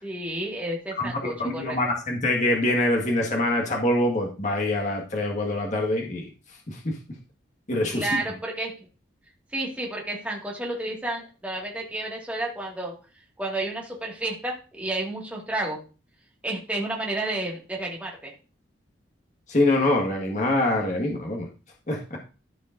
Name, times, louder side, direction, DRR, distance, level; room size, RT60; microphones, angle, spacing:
voice 1, 0.0-1.8 7.9-8.7 9.5-12.9 13.4-15.8 16.4-18.3, right 2 dB, 5° right, -3 dB, 2.0 m, -31 dB
voice 2, 1.0-6.3 6.7-6.9 7.7-8.2 19.5-21.5 21.9-22.2, left 1 dB, 40° left, 0 dB, 1.7 m, -25 dB
14.0 x 5.1 x 2.6 m, 0.34 s
head